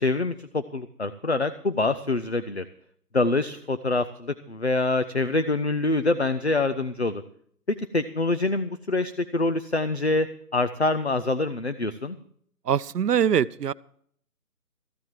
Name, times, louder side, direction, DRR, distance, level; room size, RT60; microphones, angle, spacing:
voice 1, 0.0-2.7 3.1-7.2 7.7-10.3 10.5-12.2, left 2 dB, 45° left, 11 dB, 0.5 m, -25 dB
voice 2, 12.7-13.7, right 8 dB, 80° right, 19 dB, 0.6 m, -23 dB
14.0 x 7.6 x 7.4 m, 0.63 s
figure-of-eight pair, 170°, 47 cm